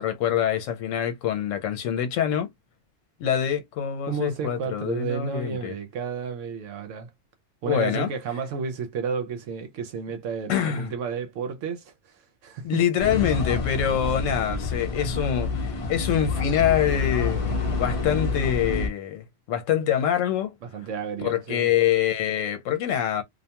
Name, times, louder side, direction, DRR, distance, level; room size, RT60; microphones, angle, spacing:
voice 1, 0.0-2.5 3.2-5.7 7.7-8.1 10.5-10.9 12.6-17.4 17.8-20.5 21.2-23.2, left 9 dB, 75° left, 0.9 m, -25 dB
voice 2, 4.0-7.1 7.6-12.8 20.7-21.7, right 6 dB, 75° right, 0.9 m, -32 dB
sound 1, 13.0-18.9, left 4 dB, 40° left, 0.5 m, -28 dB
2.4 x 2.2 x 2.8 m
omnidirectional pair, 1.3 m